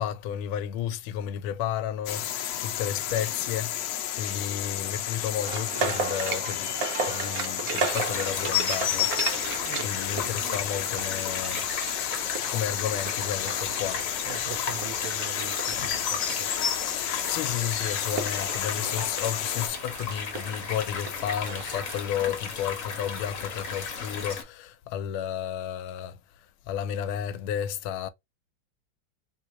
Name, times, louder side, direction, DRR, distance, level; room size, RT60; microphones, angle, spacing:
voice 1, 0.0-3.7 4.2-9.3 9.8-11.7 12.5-14.0 15.8-15.9 17.3-26.2 26.7-28.1, left 9 dB, 90° left, 1.4 m, -32 dB
sound 1, 2.1-19.7, left 11 dB, 75° left, 1.1 m, -32 dB
sound 2, 5.4-22.0, right 5 dB, 60° right, 1.0 m, -36 dB
sound 3, 7.9-24.4, left 6 dB, 50° left, 1.1 m, -34 dB
voice 2, 9.6-10.0 14.2-16.5 18.6-19.0, right 10 dB, 85° right, 1.5 m, -42 dB
3.7 x 3.1 x 2.5 m
omnidirectional pair, 2.2 m